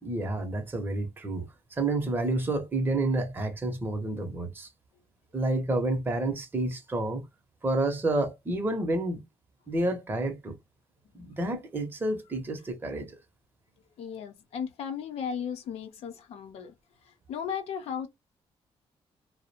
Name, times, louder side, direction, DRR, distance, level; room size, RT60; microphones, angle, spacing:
voice 1, 0.0-4.7 5.3-7.2 7.6-9.2 9.7-10.5 11.1-13.2, right 2 dB, 20° right, 0.7 m, -29 dB
voice 2, 14.0-16.7 17.0-18.1, left 7 dB, 85° left, 0.6 m, -35 dB
2.4 x 2.0 x 2.7 m
cardioid pair, 135°, 10 cm